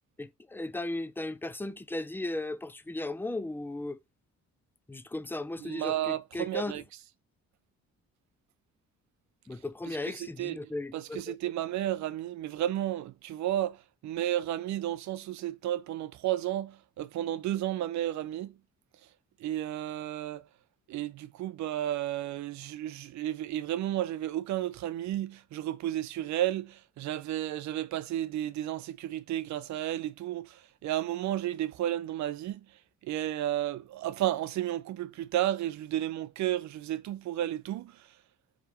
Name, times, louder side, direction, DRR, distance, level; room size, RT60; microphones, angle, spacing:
voice 1, 0.2-4.0 4.9-6.8 9.5-11.4, left 2 dB, 5° left, 0.3 m, -36 dB
voice 2, 5.6-6.8 9.9-13.8 14.0-18.5 19.4-20.4 20.9-32.6 33.0-38.0, right 13 dB, 70° right, 0.5 m, -32 dB
4.9 x 3.3 x 3.0 m
cardioid pair, 90°, 30 cm